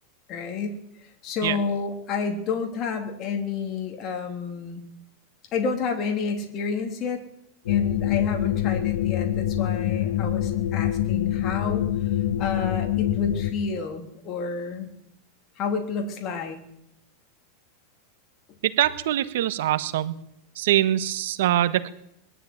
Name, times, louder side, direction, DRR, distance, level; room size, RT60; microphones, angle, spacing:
voice 1, 0.3-4.8 5.5-7.2 7.7-11.8 12.4-14.9 15.6-16.6, left 5 dB, 35° left, 3 dB, 3.5 m, -30 dB
sound 1, 7.7-13.5, left 11 dB, 85° left, 1.5 m, -25 dB
voice 2, 18.6-20.1 20.5-21.9, right 13 dB, 75° right, 11 dB, 1.5 m, -23 dB
22.0 x 12.5 x 9.7 m, 0.76 s
supercardioid pair, 145°, 0 cm